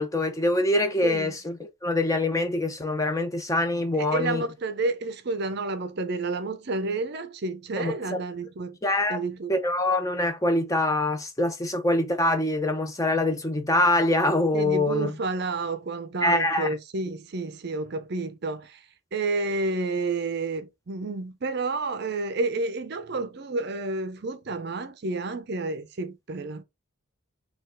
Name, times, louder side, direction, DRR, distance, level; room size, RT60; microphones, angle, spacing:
voice 1, 0.0-4.4 7.8-8.2 8.8-9.2 9.5-15.1 16.2-16.7, left 2 dB, 15° left, 0.5 m, -24 dB
voice 2, 1.0-1.3 3.9-8.8 9.1-9.5 14.5-18.8 19.1-26.6, right 3 dB, 50° right, 0.5 m, -30 dB
4.3 x 2.3 x 3.8 m
head